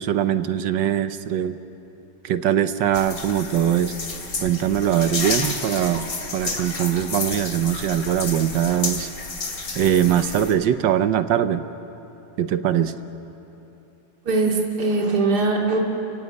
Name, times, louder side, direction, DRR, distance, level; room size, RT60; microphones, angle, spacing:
voice 1, 0.0-1.6 2.2-3.9 4.4-9.1 9.8-11.6 12.4-12.9, right 10 dB, 75° right, 11 dB, 1.6 m, -22 dB
sound 1, 2.9-10.5, left 3 dB, 50° left, 2.8 m, -31 dB
voice 2, 14.2-15.8, right 3 dB, 60° right, -1 dB, 2.9 m, -21 dB
30.0 x 16.0 x 9.8 m, 3.0 s
omnidirectional pair, 2.0 m